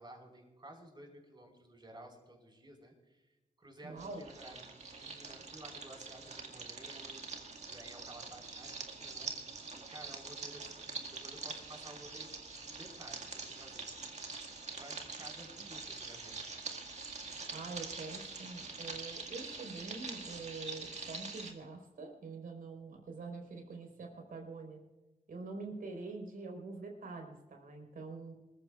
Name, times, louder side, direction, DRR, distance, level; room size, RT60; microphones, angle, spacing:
voice 1, 0.0-3.3 3.6-7.2 7.6-9.6 9.9-12.3 12.6-14.0 14.7-16.5, right 1 dB, 30° right, 1 dB, 4.9 m, -54 dB
voice 2, 3.8-4.2 17.5-24.8 25.3-28.3, right 3 dB, 75° right, 2 dB, 4.4 m, -45 dB
sound 1, 4.0-21.5, right 4 dB, 50° right, 1.9 m, -45 dB
26.0 x 15.0 x 2.5 m, 1.1 s
wide cardioid pair, 100°, 15 cm